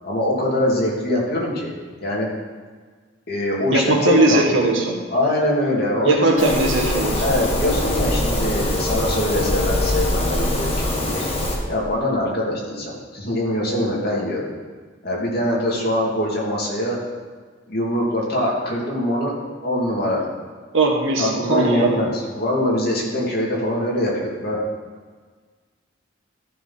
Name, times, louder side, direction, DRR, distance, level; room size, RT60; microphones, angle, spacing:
voice 1, 0.0-1.7 2.0-2.3 3.3-4.6 5.1-6.5 7.2-11.2 11.7-14.5 15.0-17.0 17.7-19.3 19.6-20.2 21.2-24.6, left 1 dB, 55° left, -4 dB, 2.5 m, -23 dB
voice 2, 3.7-5.0 6.0-7.2 20.7-22.0, right 2 dB, 80° right, 0 dB, 1.6 m, -19 dB
sound 1, 6.4-11.6, left 1 dB, 30° left, 1.5 m, -23 dB
13.5 x 4.5 x 5.7 m, 1.5 s
head